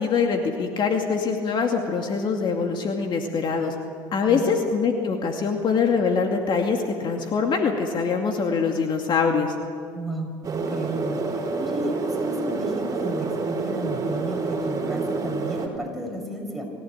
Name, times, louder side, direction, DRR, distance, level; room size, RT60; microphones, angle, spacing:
voice 1, 0.0-3.7 4.1-9.5, left 5 dB, 50° left, 3 dB, 2.4 m, -23 dB
voice 2, 9.9-16.7, right 1 dB, ahead, 2 dB, 6.1 m, -33 dB
sound 1, 10.4-15.7, right 3 dB, 35° right, 4.3 m, -28 dB
25.5 x 16.5 x 9.1 m, 2.2 s
supercardioid pair, 95°, 11 cm